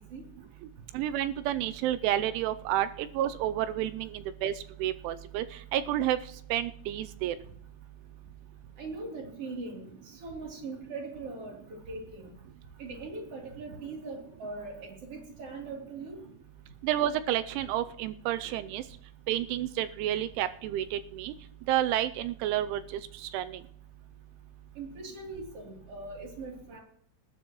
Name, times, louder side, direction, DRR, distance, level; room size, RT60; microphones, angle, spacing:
voice 1, 0.9-4.5 4.8-5.5 5.7-6.2 6.5-7.4 16.8-18.8 19.3-21.3 21.7-23.6, right 12 dB, 80° right, 12 dB, 2.8 m, -30 dB
voice 2, 8.8-12.3 12.8-16.2 24.8-26.8, right 3 dB, 35° right, 0 dB, 3.4 m, -41 dB
19.5 x 12.0 x 3.0 m, 0.66 s
omnidirectional pair, 5.8 m